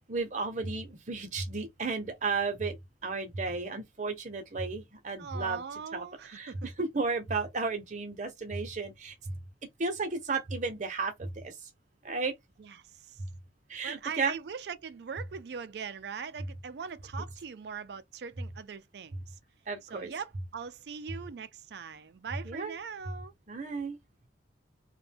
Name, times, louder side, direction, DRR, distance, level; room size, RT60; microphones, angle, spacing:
voice 1, 0.1-2.8 3.0-5.6 5.9-9.3 9.8-11.5 12.0-12.3 13.7-14.4 19.7-20.1 22.4-22.7 23.5-24.0, right 4 dB, 45° right, 0.7 m, -33 dB
voice 2, 5.2-6.7 12.6-13.2 13.8-19.4 19.9-23.3, right 6 dB, 65° right, 0.4 m, -41 dB
2.5 x 2.2 x 3.4 m
head